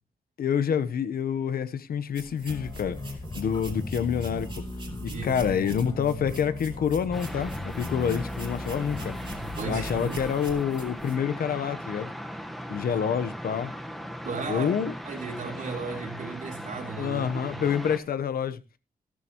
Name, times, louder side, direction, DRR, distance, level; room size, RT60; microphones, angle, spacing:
voice 1, 0.4-3.0 3.4-4.6 5.0-9.1 9.7-12.1 12.7-13.7 14.5-14.9 17.0-18.6, left 7 dB, 80° left, 1.0 m, -27 dB
sound 1, 2.1-11.2, right 3 dB, 35° right, 2.6 m, -45 dB
sound 2, 2.5-10.1, left 2 dB, 25° left, 1.6 m, -37 dB
sound 3, 7.1-18.0, equal, ahead, 1.2 m, -38 dB
voice 2, 9.6-10.2 12.9-13.0 14.3-14.7 15.1-17.6, right 4 dB, 60° right, 3.6 m, -35 dB
14.5 x 13.0 x 3.0 m
wide cardioid pair, 175°, 15 cm